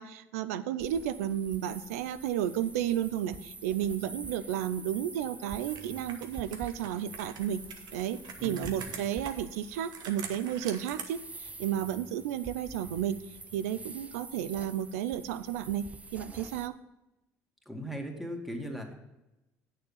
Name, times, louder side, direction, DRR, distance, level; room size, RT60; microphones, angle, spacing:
voice 1, 0.0-7.6 7.9-13.2 13.5-16.8, right 10 dB, 85° right, 15 dB, 0.4 m, -32 dB
sound 1, 0.8-16.7, right 3 dB, 15° right, 0.6 m, -47 dB
Computer keyboard, 5.6-11.0, right 7 dB, 65° right, 1.1 m, -45 dB
voice 2, 8.4-9.0 17.7-18.9, equal, ahead, 1 dB, 2.3 m, -38 dB
8.5 x 7.0 x 5.6 m, 0.95 s
hypercardioid pair, 60°, 8 cm